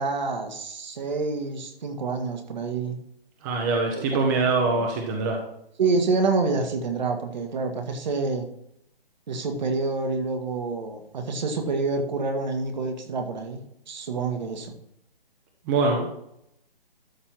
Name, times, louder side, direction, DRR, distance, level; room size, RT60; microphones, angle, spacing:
voice 1, 0.0-3.0 3.9-4.3 4.6-4.8 5.8-8.5 9.3-13.6 13.9-14.7, right 3 dB, 50° right, 4 dB, 1.8 m, -27 dB
voice 2, 3.4-5.4 15.7-16.1, right 3 dB, 20° right, 2 dB, 1.0 m, -23 dB
12.5 x 4.3 x 6.1 m, 0.77 s
figure-of-eight pair, 140°, 29 cm